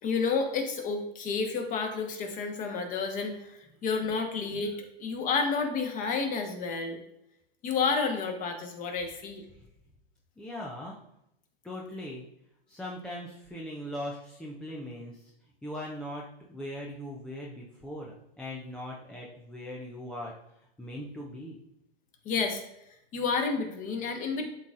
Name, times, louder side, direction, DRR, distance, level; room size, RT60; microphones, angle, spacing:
voice 1, 0.0-7.0 7.6-9.4 22.2-22.6 23.1-24.5, left 4 dB, 25° left, 5 dB, 1.1 m, -30 dB
voice 2, 10.4-11.0 11.6-12.2 12.7-15.3 15.6-20.3 20.8-21.6, left 1 dB, 5° left, -3 dB, 0.3 m, -40 dB
11.0 x 4.0 x 2.4 m, 0.83 s
hypercardioid pair, 135°, 31 cm